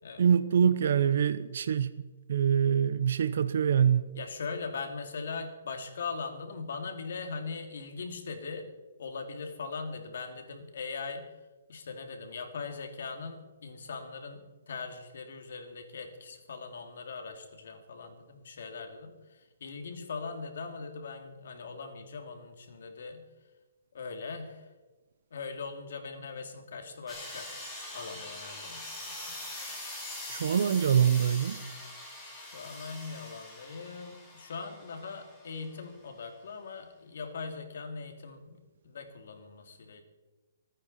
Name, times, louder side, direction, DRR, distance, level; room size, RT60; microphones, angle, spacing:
voice 1, 0.2-2.0 2.3-4.1 30.3-31.6, right 8 dB, 60° right, 12 dB, 0.7 m, -25 dB
voice 2, 4.1-8.7 9.0-11.3 11.7-23.2 23.9-24.7 25.3-27.5 27.9-29.4 32.3-40.0, left 4 dB, 65° left, 5 dB, 2.6 m, -40 dB
sound 1, 27.1-35.7, left 1 dB, 5° left, 3.3 m, -43 dB
26.5 x 9.5 x 4.3 m, 1.2 s
hypercardioid pair, 165°, 0 cm